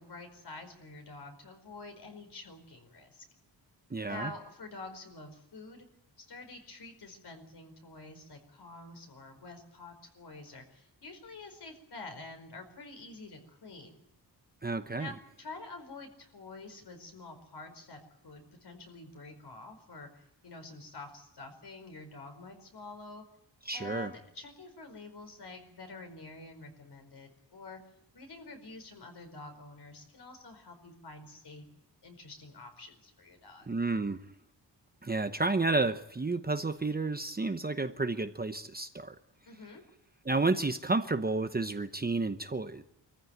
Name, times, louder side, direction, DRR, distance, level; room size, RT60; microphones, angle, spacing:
voice 1, 0.0-3.2 4.1-5.9 6.2-14.0 15.0-23.2 23.7-27.8 28.1-31.6 32.0-33.7 39.4-39.8, left 3 dB, 60° left, 5 dB, 4.9 m, -48 dB
voice 2, 3.9-4.3 14.6-15.1 23.6-24.1 33.7-34.3 35.0-39.1 40.2-42.8, right 3 dB, 20° right, 8 dB, 0.9 m, -31 dB
24.5 x 14.5 x 9.1 m, 0.84 s
wide cardioid pair, 140°, 44 cm